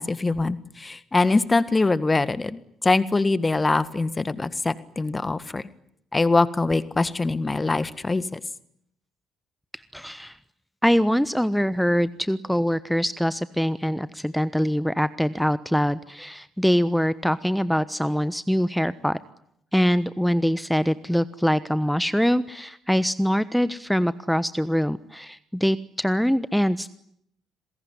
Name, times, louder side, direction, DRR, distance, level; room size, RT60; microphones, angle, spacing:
voice 1, 0.0-5.6 6.1-8.4, left 3 dB, 25° left, 15 dB, 1.7 m, -23 dB
voice 2, 9.9-10.4 10.8-19.2 19.7-26.9, equal, ahead, 16 dB, 1.1 m, -23 dB
28.0 x 21.0 x 9.9 m, 0.75 s
figure-of-eight pair, 45°, 0 cm